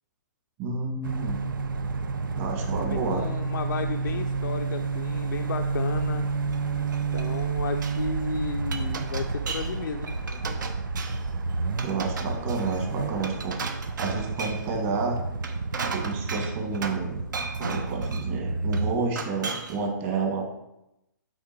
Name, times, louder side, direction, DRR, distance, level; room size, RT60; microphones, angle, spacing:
voice 1, 0.6-1.4 2.4-3.2 11.8-13.6 14.0-15.2 15.9-17.2 17.6-20.4, right 4 dB, 35° right, 1 dB, 1.9 m, -30 dB
sound 1, 1.0-18.9, right 4 dB, 90° right, 0.5 m, -30 dB
voice 2, 2.8-6.3 7.1-10.2, left 6 dB, 75° left, 4 dB, 0.5 m, -33 dB
Glass, 6.5-7.4 7.7-8.0 8.4-9.8 10.0-11.3 11.7-14.7 15.3-17.1 17.3-18.3 18.7-19.8, right 4 dB, 70° right, 1.0 m, -36 dB
8.9 x 4.0 x 4.5 m, 0.87 s
hypercardioid pair, 135°, 11 cm